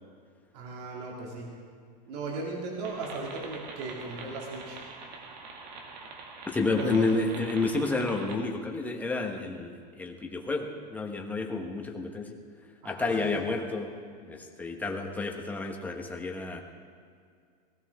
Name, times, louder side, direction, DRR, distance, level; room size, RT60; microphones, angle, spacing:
voice 1, 0.5-1.5 2.1-4.8 6.8-7.1 12.8-13.1, right 3 dB, 70° right, -2 dB, 3.0 m, -37 dB
sound 1, 2.8-8.4, right 3 dB, 90° right, 2.3 m, -44 dB
voice 2, 6.5-12.4 12.8-16.6, left 3 dB, 5° left, 2 dB, 1.2 m, -30 dB
18.5 x 15.5 x 3.6 m, 2.2 s
supercardioid pair, 155°, 21 cm